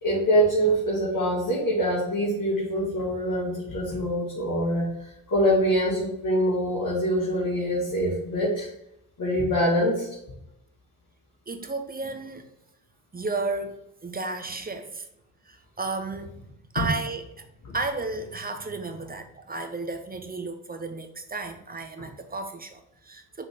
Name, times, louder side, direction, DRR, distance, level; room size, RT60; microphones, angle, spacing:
voice 1, 0.0-8.7 9.2-10.1 17.7-17.8, equal, 45° left, -6 dB, 2.2 m, -24 dB
voice 2, 11.5-12.5 13.1-13.8 14.0-15.1 15.4-16.3 16.7-23.5, right 3 dB, 20° right, 6 dB, 0.9 m, -33 dB
5.7 x 3.5 x 5.0 m, 0.81 s
hypercardioid pair, 50°, 44 cm